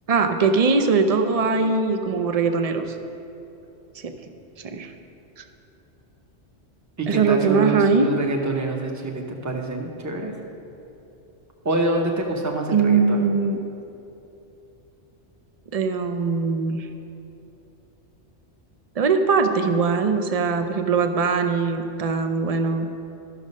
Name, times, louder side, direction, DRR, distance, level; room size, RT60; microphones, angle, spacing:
voice 1, 0.1-2.9 4.0-4.1 4.6-4.9 7.1-8.1 12.7-13.6 15.7-16.9 19.0-22.9, right 4 dB, 45° right, 7 dB, 0.5 m, -21 dB
voice 2, 7.0-10.3 11.6-13.2, right 2 dB, 15° right, 1 dB, 0.8 m, -26 dB
12.5 x 6.3 x 5.4 m, 2.9 s
omnidirectional pair, 1.2 m